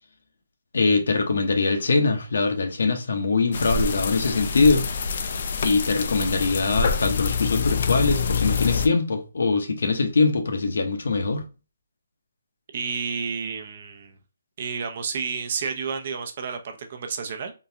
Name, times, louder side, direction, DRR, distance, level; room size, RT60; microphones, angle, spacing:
voice 1, 0.7-4.8 5.6-11.4, left 3 dB, 70° left, 0.8 m, -22 dB
sound 1, 3.5-8.9, left 5 dB, 50° left, 0.4 m, -26 dB
voice 2, 12.7-14.1 14.6-17.5, right 6 dB, 45° right, 0.6 m, -30 dB
3.8 x 2.4 x 2.8 m
hypercardioid pair, 160°, 0 cm